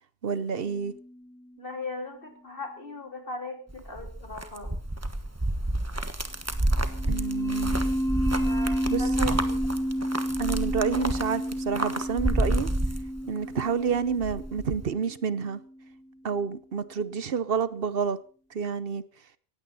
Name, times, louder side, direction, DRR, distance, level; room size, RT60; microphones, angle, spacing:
voice 1, 0.2-0.9 7.1-7.8 8.9-9.3 10.4-12.7 13.3-15.6 16.2-18.2 18.5-19.0, right 6 dB, 65° right, 1.1 m, -29 dB
sound 1, 0.5-1.4 6.8-15.5, equal, 5° left, 0.5 m, -31 dB
voice 2, 1.6-4.8 8.4-9.7, left 2 dB, 60° left, 3.4 m, -39 dB
sound 2, 3.7-13.6 13.9-14.9, right 1 dB, 15° right, 1.3 m, -30 dB
18.5 x 15.5 x 4.2 m
omnidirectional pair, 1.0 m